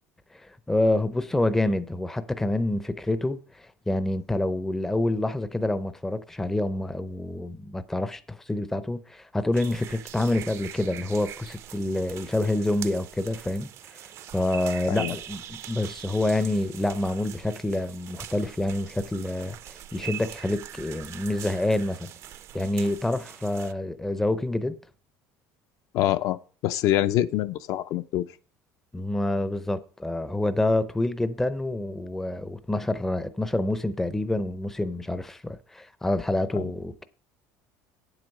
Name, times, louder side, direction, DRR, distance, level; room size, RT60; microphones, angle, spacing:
voice 1, 0.7-14.0 14.3-22.1 22.5-24.8 28.9-37.0, left 1 dB, 5° left, 0.5 m, -27 dB
sound 1, 9.5-23.7, right 11 dB, 40° right, 0.5 m, -42 dB
voice 2, 25.9-26.4 26.6-28.2 36.5-36.6, left 13 dB, 55° left, 0.5 m, -25 dB
8.9 x 7.9 x 5.3 m
cardioid pair, 155°, 7 cm